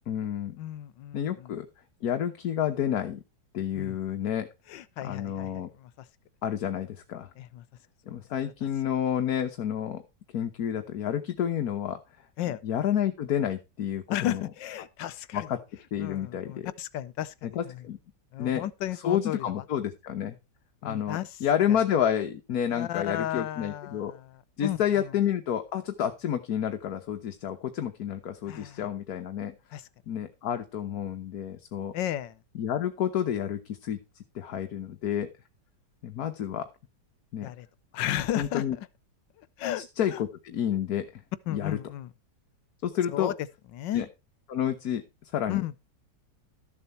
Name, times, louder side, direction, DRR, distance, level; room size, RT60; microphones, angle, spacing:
voice 1, 0.0-0.6 1.1-1.7 2.0-3.2 3.5-4.5 5.0-5.7 6.4-7.3 8.1-10.0 10.3-12.0 12.6-14.4 15.3-15.6 15.9-16.7 17.4-18.0 18.4-18.6 18.9-20.4 20.8-24.1 24.6-29.5 30.1-31.9 32.5-34.0 34.3-35.3 36.0-36.7 37.3-37.5 38.4-38.8 39.8-41.2 41.5-41.8 42.8-43.3 43.9-44.1 44.5-45.8, left 9 dB, 60° left, 1.4 m, -30 dB
voice 2, 0.6-1.6 3.7-4.0 4.7-5.5 5.8-5.9 7.4-7.6 8.1-8.2 12.4-12.6 14.1-15.5 16.0-17.6 18.3-19.5 20.8-21.3 21.7-21.8 22.7-24.3 24.6-24.8 28.5-28.8 29.7-29.8 31.9-32.4 37.4-37.7 37.9-38.9 39.6-40.2 41.5-42.1 43.1-43.3 43.7-44.1 45.5-45.7, left 12 dB, 85° left, 1.5 m, -33 dB
13.5 x 7.3 x 4.2 m
omnidirectional pair, 1.9 m